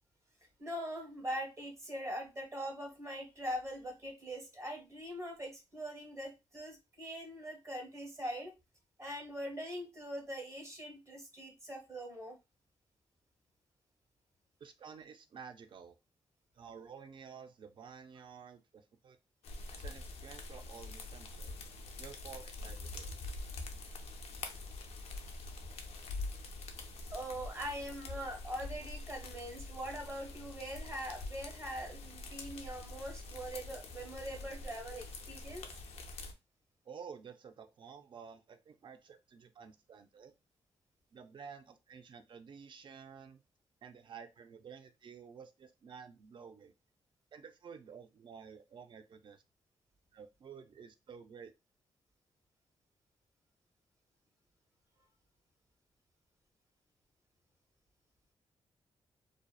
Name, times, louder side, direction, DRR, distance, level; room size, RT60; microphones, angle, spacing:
voice 1, 0.6-8.5 9.0-12.4 27.1-35.7, equal, 30° right, 2 dB, 0.9 m, -42 dB
voice 2, 14.6-16.0 16.5-19.2 19.7-21.5 22.0-23.0 36.9-40.3 41.1-43.4 43.8-46.7 47.3-49.4 50.1-51.5, right 6 dB, 50° right, 8 dB, 0.4 m, -52 dB
sound 1, 19.4-36.3, left 2 dB, 90° left, 0.4 m, -45 dB
2.7 x 2.0 x 2.2 m, 0.24 s
wide cardioid pair, 115°, 11 cm